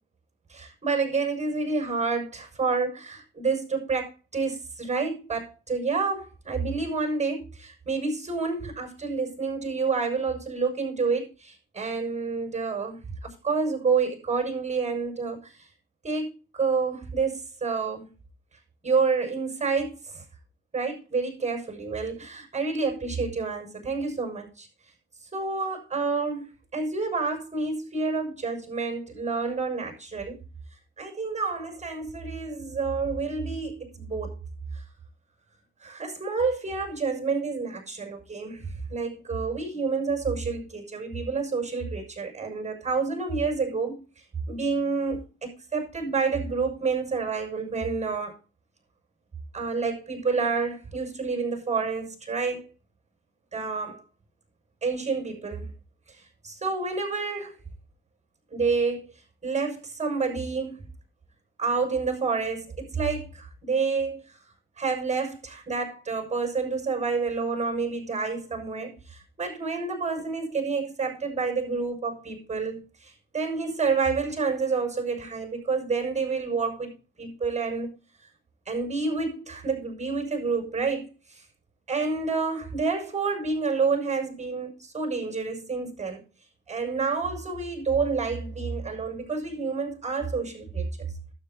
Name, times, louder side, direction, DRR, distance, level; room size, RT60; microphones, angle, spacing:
voice 1, 0.5-13.0 13.4-15.7 16.0-18.1 18.8-20.2 20.7-24.7 25.3-26.5 26.7-30.4 31.0-34.4 34.7-34.8 35.8-43.9 44.5-48.3 49.5-52.7 53.5-54.0 54.8-55.7 56.1-57.6 58.5-59.0 59.4-60.8 61.6-64.2 64.8-77.9 78.7-81.4 81.9-86.2 86.7-91.1, right 4 dB, 25° right, 2 dB, 6.7 m, -29 dB
12.0 x 8.3 x 4.1 m, 0.32 s
cardioid pair, 90°, 30 cm